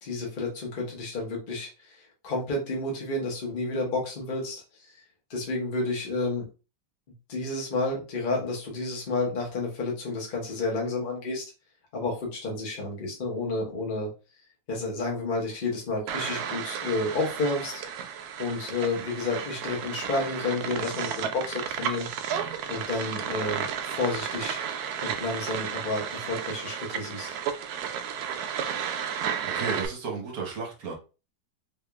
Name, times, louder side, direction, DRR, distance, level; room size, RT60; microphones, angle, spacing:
voice 1, 0.0-5.0 5.3-6.5 7.3-11.5 11.9-14.1 14.7-17.8 18.4-22.1 22.7-24.6 25.0-27.3, left 3 dB, 35° left, -2 dB, 0.9 m, -31 dB
sound 1, 16.1-29.9, right 8 dB, 90° right, 0.8 m, -33 dB
voice 2, 29.2-30.9, right 5 dB, 55° right, 1 dB, 1.1 m, -34 dB
3.5 x 3.4 x 2.3 m, 0.32 s
omnidirectional pair, 2.2 m